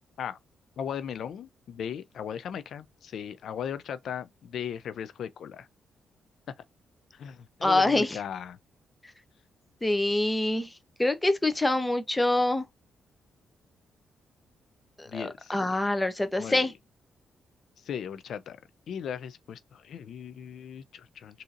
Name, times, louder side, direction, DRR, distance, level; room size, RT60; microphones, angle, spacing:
voice 1, 0.8-5.7 7.1-8.6 15.1-15.5 16.4-16.7 17.8-18.6 18.9-21.4, left 8 dB, 70° left, 0.3 m, -37 dB
voice 2, 7.6-8.2 9.8-10.7 11.0-12.6 15.0-16.7, left 2 dB, 15° left, 0.7 m, -25 dB
3.7 x 2.7 x 2.4 m
cardioid pair, 85°, 0 cm